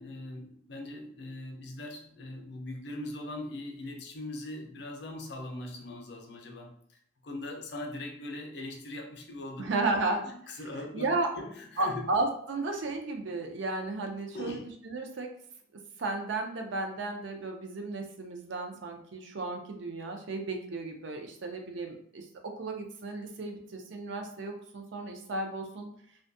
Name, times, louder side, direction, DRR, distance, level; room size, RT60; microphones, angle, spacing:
voice 1, 0.0-9.7 10.1-11.1 11.4-12.1 14.3-14.6, left 2 dB, 60° left, 2 dB, 0.5 m, -41 dB
voice 2, 9.6-10.3 10.9-11.3 11.8-15.3 16.0-25.9, right 2 dB, 70° right, 3 dB, 0.4 m, -33 dB
2.6 x 2.2 x 2.6 m, 0.66 s
head